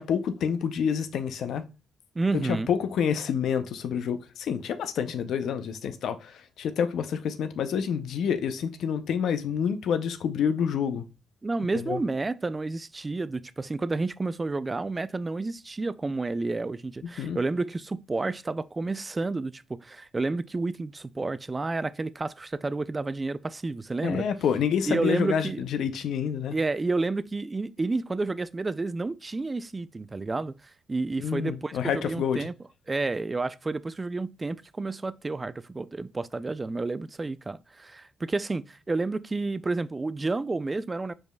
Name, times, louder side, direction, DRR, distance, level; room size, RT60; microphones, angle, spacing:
voice 1, 0.0-1.6 2.3-11.0 11.9-12.0 17.2-17.4 24.0-26.5 31.2-32.5, left 7 dB, 75° left, 0.5 m, -28 dB
voice 2, 2.2-2.7 11.4-24.3 24.9-25.6 26.5-32.5 32.9-41.1, right 3 dB, 30° right, 0.3 m, -30 dB
5.0 x 4.8 x 2.2 m
supercardioid pair, 55°, 0 cm